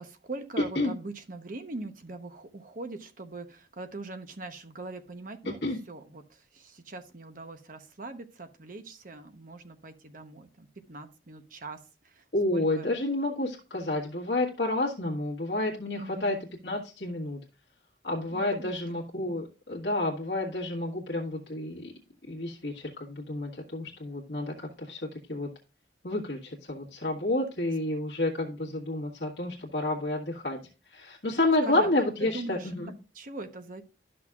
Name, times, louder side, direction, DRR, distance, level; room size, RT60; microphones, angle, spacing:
voice 1, 0.0-5.6 5.9-12.2 12.5-12.9 16.0-16.3 18.3-19.0 31.6-31.9 32.2-32.7 33.1-33.8, right 2 dB, 50° right, 8 dB, 0.9 m, -42 dB
voice 2, 12.3-16.4 16.6-17.4 18.0-21.9 22.3-25.0 25.3-25.5 26.0-30.6 30.9-32.9, left 2 dB, 65° left, -4 dB, 1.6 m, -30 dB
12.5 x 6.1 x 2.4 m, 0.33 s
head